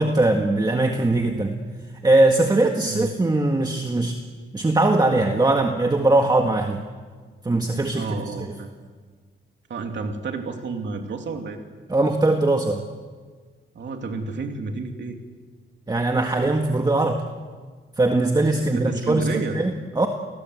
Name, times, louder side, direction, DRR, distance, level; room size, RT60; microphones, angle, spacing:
voice 1, 0.0-1.5 2.0-4.2 4.5-6.8 7.4-8.1 11.9-12.8 15.9-17.2 18.0-20.1, right 2 dB, 20° right, 4 dB, 1.8 m, -20 dB
voice 2, 7.9-8.7 9.7-11.6 13.7-15.2 18.5-19.6, right 4 dB, 60° right, 3 dB, 2.9 m, -31 dB
30.0 x 20.5 x 8.1 m, 1.5 s
wide cardioid pair, 125°, 21 cm